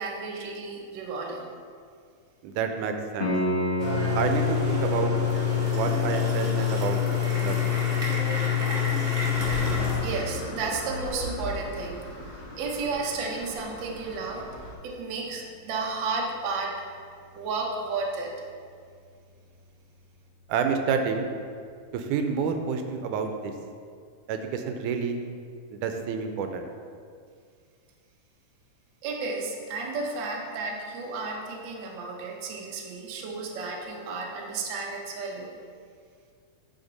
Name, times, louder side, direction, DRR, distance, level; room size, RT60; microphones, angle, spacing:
voice 1, 0.0-1.5 9.3-9.4 10.0-14.5 14.8-16.8 17.3-18.3 29.0-35.6, right 3 dB, 65° right, -1 dB, 1.1 m, -33 dB
voice 2, 2.4-3.3 4.1-5.1 5.7-7.0 7.4-7.7 20.5-21.3 21.9-23.5 24.3-25.2 25.7-26.7, right 6 dB, 85° right, 6 dB, 2.1 m, -29 dB
Piano, 3.2-13.9 17.2-17.3, right 1 dB, 90° left, 0.4 m, -35 dB
sound 1, 3.8-10.0, left 8 dB, 35° right, 1.1 m, -26 dB
sound 2, 9.3-14.7, equal, 65° left, 2.6 m, -37 dB
8.6 x 5.7 x 4.0 m, 2.2 s
omnidirectional pair, 3.5 m